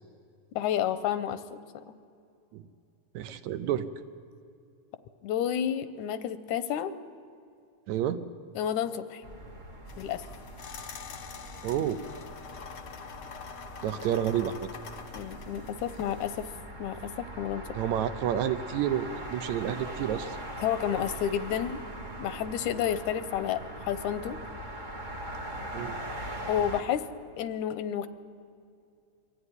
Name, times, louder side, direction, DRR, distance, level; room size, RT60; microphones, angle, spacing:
voice 1, 0.6-2.0 5.2-6.9 8.6-9.2 10.0-10.2 15.1-16.5 16.8-17.1 17.4-17.6 20.6-21.8 22.2-24.4 26.5-27.1 27.4-28.1, left 9 dB, 85° left, 12 dB, 2.2 m, -30 dB
voice 2, 3.1-3.9 7.9-8.2 11.6-12.0 13.8-14.7 17.7-20.4 25.7-26.0, right 10 dB, 75° right, 11 dB, 2.1 m, -30 dB
sound 1, 9.2-26.8, right 1 dB, 30° right, 0.9 m, -41 dB
sound 2, 9.9-16.5, left 6 dB, 55° left, 1.2 m, -45 dB
24.0 x 13.5 x 9.8 m, 2.5 s
omnidirectional pair, 3.4 m